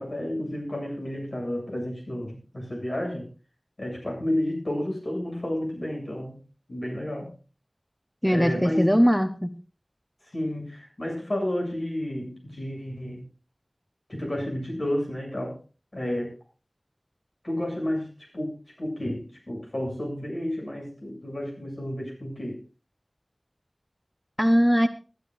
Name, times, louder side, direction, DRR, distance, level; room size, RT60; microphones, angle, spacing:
voice 1, 0.0-3.3 3.8-6.3 6.7-7.3 8.3-8.9 10.3-13.2 14.1-15.6 15.9-16.3 17.4-18.1 18.3-22.6, left 1 dB, 70° left, 0 dB, 7.9 m, -31 dB
voice 2, 8.2-9.5 24.4-24.9, equal, 5° left, 8 dB, 1.0 m, -20 dB
21.5 x 12.0 x 2.6 m, 0.34 s
wide cardioid pair, 45°, 0 cm